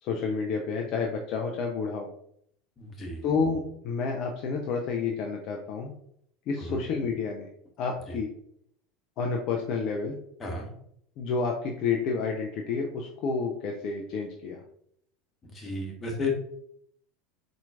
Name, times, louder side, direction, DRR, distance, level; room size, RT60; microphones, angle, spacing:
voice 1, 0.0-2.1 3.2-5.9 6.5-7.5 7.8-8.3 9.2-10.2 11.2-14.6, left 5 dB, 50° left, 1 dB, 0.6 m, -30 dB
voice 2, 2.8-3.2 6.6-6.8 8.1-8.2 10.4-10.7 15.4-16.3, left 2 dB, 25° left, 1 dB, 1.3 m, -34 dB
4.3 x 3.9 x 2.4 m, 0.68 s
figure-of-eight pair, 75°, 0 cm